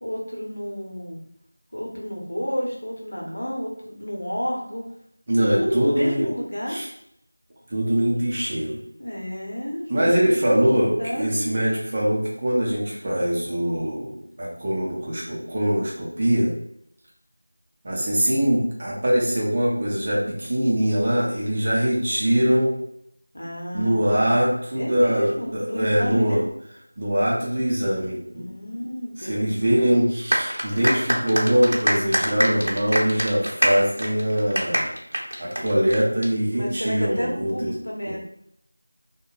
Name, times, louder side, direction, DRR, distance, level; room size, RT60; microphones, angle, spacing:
voice 1, 0.0-1.2 1.7-4.8 5.5-6.8 9.0-10.6 11.0-11.5 23.3-24.3 24.7-26.4 28.3-30.0 36.5-38.2, equal, 75° left, -2 dB, 0.8 m, -30 dB
voice 2, 5.3-6.3 6.7-6.9 7.7-8.8 9.9-16.6 17.8-22.8 23.7-26.4 27.0-28.4 29.2-34.9 35.4-37.7, equal, 25° right, -5 dB, 0.5 m, -22 dB
sound 1, 30.3-36.3, equal, 90° right, 0.7 m, -25 dB
2.9 x 2.1 x 2.4 m, 0.74 s
figure-of-eight pair, 175°, 0 cm